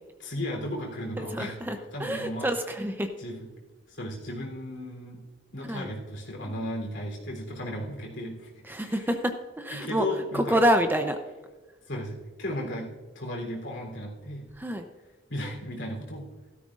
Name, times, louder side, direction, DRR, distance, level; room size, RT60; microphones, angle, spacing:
voice 1, 0.2-1.6 1.9-2.5 3.2-3.5 3.9-5.2 5.5-8.5 8.8-9.0 9.7-10.6 11.9-14.4 15.3-16.3, left 1 dB, 70° left, 0 dB, 3.4 m, -35 dB
voice 2, 1.2-3.1 5.7-5.9 6.4-6.6 8.7-11.2 14.6-14.9, equal, 10° right, 7 dB, 0.6 m, -27 dB
16.0 x 13.5 x 2.5 m, 1.3 s
head